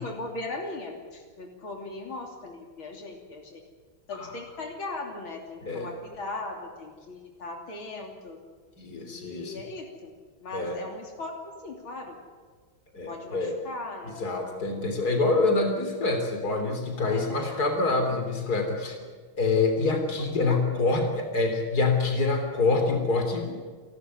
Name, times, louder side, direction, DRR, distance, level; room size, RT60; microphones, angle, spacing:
voice 1, 0.0-3.6 4.1-8.4 9.1-10.1 10.4-11.4 11.6-12.2 13.1-14.4 17.0-17.6 20.5-21.1, left 2 dB, 85° left, 2 dB, 3.8 m, -38 dB
voice 2, 5.6-6.0 8.8-9.6 10.5-10.8 12.9-13.6 14.0-19.0 19.4-23.5, left 3 dB, 50° left, 4 dB, 3.9 m, -26 dB
29.5 x 12.5 x 9.5 m, 1.5 s
omnidirectional pair, 2.2 m